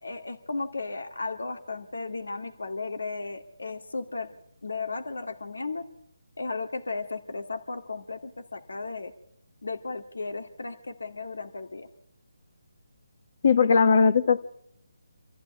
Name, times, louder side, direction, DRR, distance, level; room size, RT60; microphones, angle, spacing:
voice 1, 0.0-4.4 4.6-5.8 6.4-9.1 9.6-11.9, left 3 dB, 80° left, 7 dB, 2.0 m, -35 dB
voice 2, 13.4-14.4, left 5 dB, 50° left, 11 dB, 1.6 m, -19 dB
26.0 x 14.5 x 9.8 m, 0.74 s
figure-of-eight pair, 160°, 0 cm